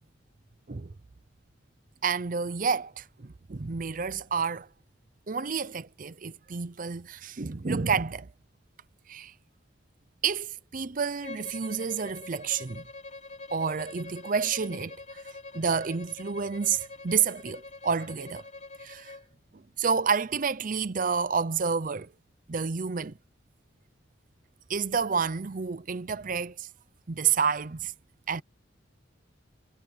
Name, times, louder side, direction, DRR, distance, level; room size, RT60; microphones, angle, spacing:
voice 1, 2.0-4.7 5.3-8.3 9.1-9.3 10.2-12.8 13.5-15.2 15.5-18.4 18.8-19.1 19.5-22.1 22.5-23.2 24.7-26.7 27.1-27.9 28.3-28.4, right 6 dB, 45° right, 0.6 m, -29 dB
Bowed string instrument, 11.2-19.2, left 3 dB, 35° left, 4.8 m, -45 dB
head